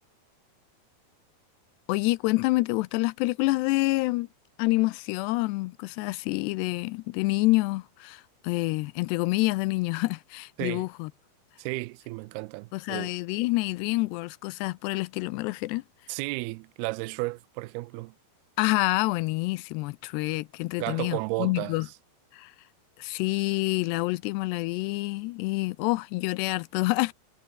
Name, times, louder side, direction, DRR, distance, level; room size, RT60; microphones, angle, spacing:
voice 1, 1.9-4.3 4.6-11.1 12.7-15.8 18.6-21.9 22.3-22.6 23.0-27.1, left 21 dB, 80° left, 2.6 m, -27 dB
voice 2, 11.6-13.1 16.1-18.1 20.8-21.8, right 23 dB, 85° right, 2.3 m, -33 dB
omnidirectional pair, 5.1 m